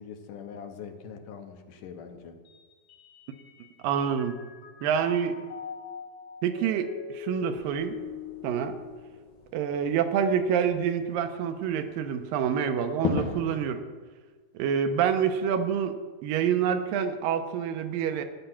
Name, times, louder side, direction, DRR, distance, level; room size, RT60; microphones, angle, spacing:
voice 1, 0.0-2.4, left 6 dB, 75° left, 6 dB, 2.3 m, -43 dB
Mallet percussion, 2.5-3.8 4.2-9.6, left 6 dB, 55° left, 1.4 m, -42 dB
voice 2, 3.8-4.4 4.8-5.4 6.4-8.0 8.4-8.8 9.5-13.8 14.5-18.2, right 8 dB, 80° right, 8 dB, 2.4 m, -27 dB
sound 1, 7.5-13.6, left 6 dB, 90° left, 3.2 m, -38 dB
12.5 x 9.8 x 5.8 m, 1.4 s
omnidirectional pair, 4.1 m